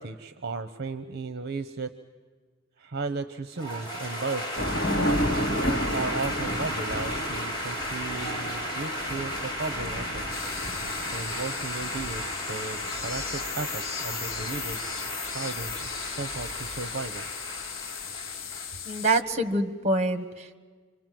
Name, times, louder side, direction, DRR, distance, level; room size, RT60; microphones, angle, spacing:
voice 1, 0.0-1.9 2.8-4.6 5.4-10.4 11.1-17.2, right 3 dB, 55° right, 12 dB, 0.8 m, -35 dB
sound 1, 3.6-19.1, equal, 20° left, 5.9 m, -35 dB
Thunder / Rain, 4.6-17.1, equal, 50° left, 2.9 m, -33 dB
sound 2, 10.3-19.2, left 8 dB, 75° left, 0.7 m, -37 dB
voice 2, 18.9-20.6, right 2 dB, 35° right, 9 dB, 1.5 m, -26 dB
27.5 x 26.0 x 7.7 m, 1.5 s
head